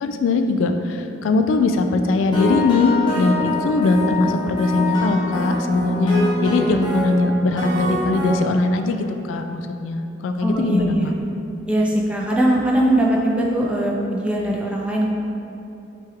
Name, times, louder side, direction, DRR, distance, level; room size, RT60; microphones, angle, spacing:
voice 1, 0.0-11.1, left 3 dB, 80° left, 6 dB, 0.3 m, -20 dB
sound 1, 2.3-8.3, left 2 dB, 25° left, 0.9 m, -25 dB
voice 2, 10.4-11.1 11.7-15.1, right 1 dB, 5° right, -3 dB, 0.4 m, -20 dB
6.3 x 2.3 x 3.4 m, 2.9 s
head